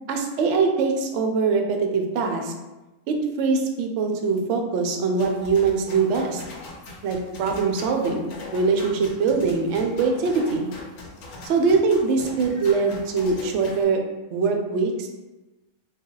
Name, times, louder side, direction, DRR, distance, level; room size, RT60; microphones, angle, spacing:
voice 1, 0.1-2.5 3.1-6.4 7.0-10.7 11.4-14.0 14.3-15.1, right 4 dB, 65° right, 4 dB, 0.7 m, -23 dB
sound 1, 5.2-13.8, left 2 dB, 80° left, 1.2 m, -41 dB
3.3 x 2.3 x 3.8 m, 1.1 s
omnidirectional pair, 1.6 m